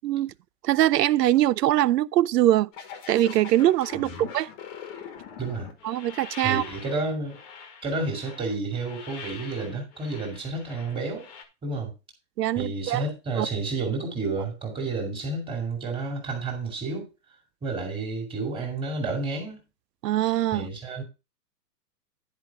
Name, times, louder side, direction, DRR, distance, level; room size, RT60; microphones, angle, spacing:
voice 1, 0.0-0.3 0.6-2.7 3.1-4.5 5.8-6.6 12.4-13.0 13.4-13.5 20.0-20.7, right 13 dB, 75° right, 0.6 m, -22 dB
sound 1, 2.7-11.4, left 7 dB, 25° left, 1.3 m, -42 dB
voice 2, 5.4-5.7 6.4-7.4 7.8-11.3 11.6-11.9 12.5-17.1 17.6-19.6 20.5-21.0, right 3 dB, 10° right, 2.4 m, -30 dB
10.5 x 5.1 x 4.7 m
hypercardioid pair, 165°, 49 cm